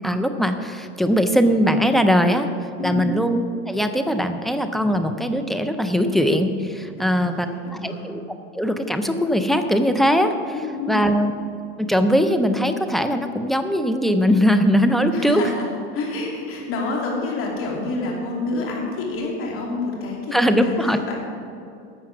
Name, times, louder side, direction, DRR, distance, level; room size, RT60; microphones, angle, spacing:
voice 1, 0.0-2.5 2.8-3.4 3.7-7.5 7.7-8.2 8.5-10.3 10.9-11.3 11.8-15.4 20.3-21.0, equal, ahead, 8 dB, 0.4 m, -20 dB
voice 2, 2.8-3.1 7.0-8.0 10.5-11.0 15.1-15.7 15.9-21.2, left 2 dB, 35° left, -2 dB, 2.9 m, -28 dB
12.0 x 7.5 x 6.0 m, 2.6 s
supercardioid pair, 130°, 36 cm